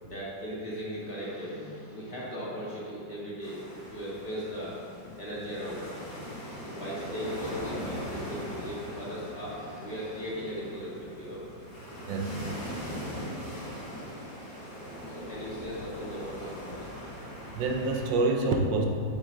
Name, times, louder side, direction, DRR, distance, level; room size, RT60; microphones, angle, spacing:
voice 1, 0.0-3.6 3.9-6.0 6.7-11.5 14.8-16.9, equal, 30° left, -7 dB, 1.9 m, -38 dB
sound 1, 3.4-18.1, equal, 65° left, 2.6 m, -40 dB
voice 2, 12.0-12.5 17.5-18.9, right 3 dB, 80° right, 2 dB, 1.5 m, -27 dB
7.7 x 7.4 x 3.9 m, 2.4 s
omnidirectional pair, 2.0 m